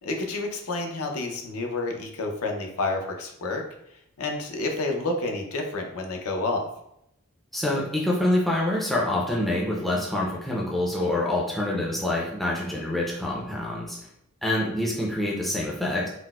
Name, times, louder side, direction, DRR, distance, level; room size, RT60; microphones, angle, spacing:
voice 1, 0.0-3.6 4.2-6.7, left 2 dB, 75° left, 3 dB, 0.5 m, -29 dB
voice 2, 7.5-14.0 14.4-16.1, left 1 dB, ahead, -4 dB, 0.4 m, -26 dB
4.0 x 2.0 x 2.2 m, 0.78 s
head